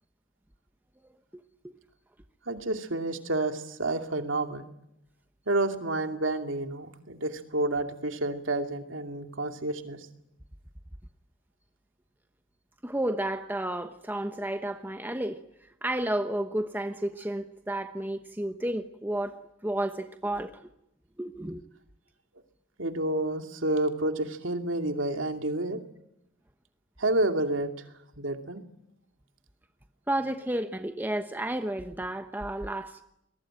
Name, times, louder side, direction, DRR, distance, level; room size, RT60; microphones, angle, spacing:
voice 1, 2.5-4.6 5.5-10.1 22.8-25.8 27.0-27.7 28.2-28.6, right 2 dB, 85° right, 2.6 m, -29 dB
voice 2, 12.8-15.4 15.8-20.7 21.2-21.6 30.1-33.0, right 1 dB, 10° right, 1.0 m, -32 dB
30.0 x 21.5 x 9.0 m
head